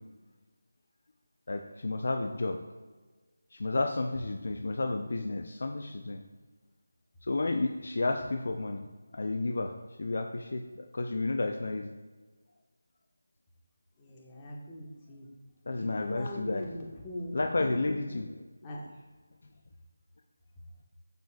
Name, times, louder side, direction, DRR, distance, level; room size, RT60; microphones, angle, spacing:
voice 1, 1.5-2.6 3.5-6.2 7.2-8.8 9.1-9.7 10.0-11.9 15.7-16.7 17.3-18.3, left 2 dB, 60° left, 5 dB, 0.5 m, -31 dB
voice 2, 14.0-15.3 15.7-17.3 18.6-18.9, left 1 dB, 20° left, -3 dB, 1.5 m, -41 dB
8.9 x 6.7 x 2.4 m, 1.3 s
figure-of-eight pair, 160°, 0 cm